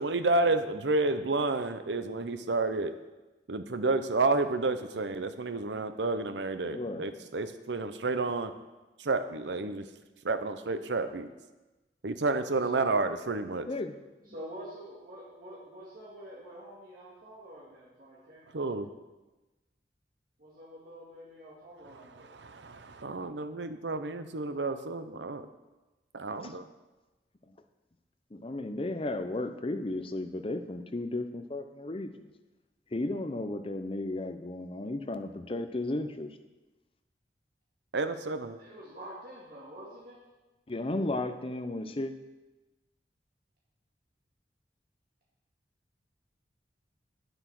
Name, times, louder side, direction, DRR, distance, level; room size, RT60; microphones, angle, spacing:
voice 1, 0.0-2.9 3.5-8.5 9.0-9.8 10.2-11.3 12.0-13.7 18.5-18.9 22.3-25.5 26.1-26.7 37.9-38.6, right 3 dB, 85° right, 10 dB, 0.8 m, -30 dB
voice 2, 6.7-7.3 13.7-14.0 26.4-26.6 27.5-27.6 28.3-32.3 32.9-36.4 40.7-42.1, left 2 dB, 30° left, 7 dB, 0.7 m, -34 dB
voice 3, 14.3-18.4 20.4-22.4 38.6-40.2, equal, 55° right, -6 dB, 2.1 m, -47 dB
9.3 x 8.0 x 6.0 m, 1.1 s
head